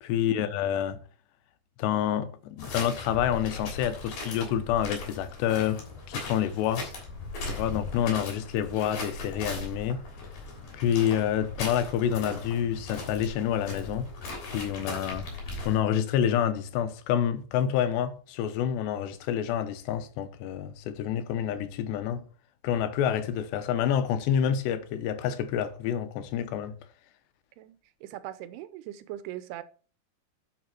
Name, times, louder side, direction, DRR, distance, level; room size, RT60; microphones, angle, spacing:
voice 1, 0.0-1.0 1.8-6.9 7.5-10.0 10.7-14.1 14.4-15.3 15.6-22.2 22.6-26.8, left 9 dB, 90° left, 3.2 m, -28 dB
sound 1, 2.6-15.8, left 3 dB, 55° left, 4.9 m, -38 dB
voice 2, 27.6-29.6, right 13 dB, 80° right, 2.8 m, -41 dB
11.0 x 6.0 x 4.4 m
omnidirectional pair, 4.8 m